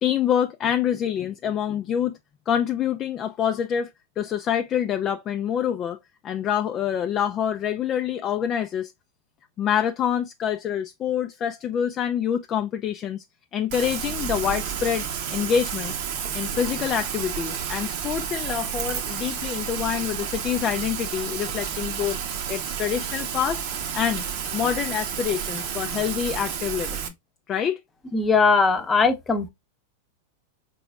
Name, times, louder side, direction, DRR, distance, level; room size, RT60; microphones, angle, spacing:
voice 1, 0.0-2.2 2.5-3.9 4.2-6.0 6.2-8.9 9.6-13.2 13.5-15.9 16.3-22.2 22.5-23.6 23.9-24.2 24.5-27.1 27.5-27.8, left 9 dB, 35° left, 0.3 m, -26 dB
Rain, 13.7-27.1, right 8 dB, 60° right, 0.8 m, -31 dB
voice 2, 28.1-29.5, left 4 dB, 20° left, 0.8 m, -20 dB
4.1 x 3.0 x 2.2 m
hypercardioid pair, 110°, 0 cm